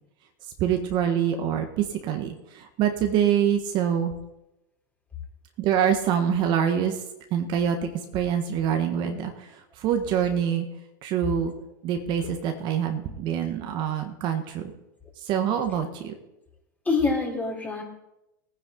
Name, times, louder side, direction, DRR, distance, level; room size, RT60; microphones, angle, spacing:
voice 1, 0.6-4.1 5.6-7.0 7.3-10.7 11.0-11.5 11.8-14.6 15.2-16.1, right 9 dB, 45° right, 5 dB, 1.5 m, -25 dB
voice 2, 16.9-17.8, left 4 dB, 15° left, -1 dB, 3.9 m, -26 dB
19.0 x 9.7 x 4.0 m, 0.90 s
hypercardioid pair, 105°, 11 cm